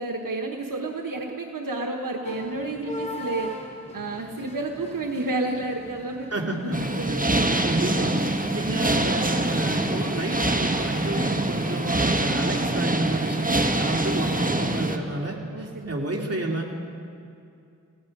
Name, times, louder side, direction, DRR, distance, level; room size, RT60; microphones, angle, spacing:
voice 1, 0.0-3.5 3.9-6.3 6.6-7.6 15.5-16.0, right 2 dB, 85° right, 2 dB, 1.2 m, -31 dB
sound 1, 2.2-9.2, equal, 20° left, 2.9 m, -40 dB
voice 2, 6.3-7.1 7.6-8.2 8.5-16.7, right 1 dB, 45° right, 0 dB, 2.8 m, -30 dB
sound 2, 6.7-15.0, right 2 dB, 25° right, 1.5 m, -25 dB
29.0 x 17.0 x 5.4 m, 2.5 s
wide cardioid pair, 50°, 32 cm